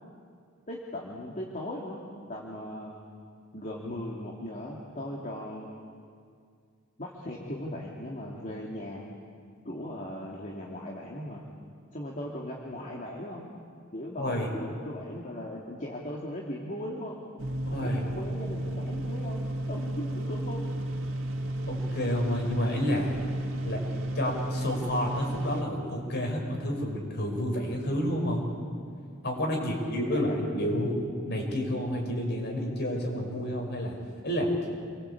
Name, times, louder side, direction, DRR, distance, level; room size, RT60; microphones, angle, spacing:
voice 1, 0.7-2.0 2.3-3.1 3.5-5.7 7.0-9.1 9.6-11.4 11.9-13.5 13.9-17.2 17.8-20.7 29.5-30.8, left 1 dB, 40° left, -3 dB, 2.8 m, -38 dB
voice 2, 14.2-14.5 17.7-18.0 21.7-23.2 23.6-23.8 24.1-28.5 29.2-33.9 34.2-34.5, equal, 55° left, 1 dB, 6.3 m, -30 dB
sound 1, 17.4-25.6, right 1 dB, 80° right, 2.2 m, -33 dB
28.5 x 23.5 x 8.6 m, 2.2 s
head